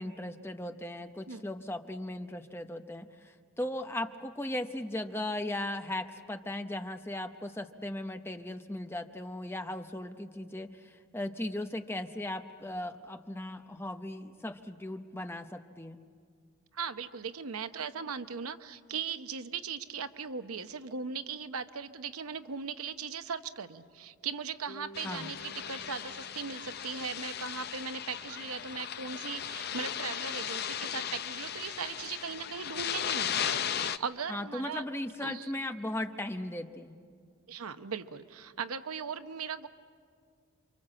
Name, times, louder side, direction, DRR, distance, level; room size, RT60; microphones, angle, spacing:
voice 1, 0.0-16.0 25.0-25.3 34.3-37.0, left 1 dB, 10° left, 7 dB, 0.8 m, -37 dB
voice 2, 16.7-34.8 35.2-35.5 37.5-39.7, right 6 dB, 85° right, 10 dB, 0.9 m, -38 dB
Bass guitar, 24.7-28.8, equal, 65° left, 4.0 m, -54 dB
sound 1, 24.9-34.0, left 9 dB, 45° left, 0.6 m, -36 dB
28.5 x 25.0 x 7.6 m, 2.1 s
head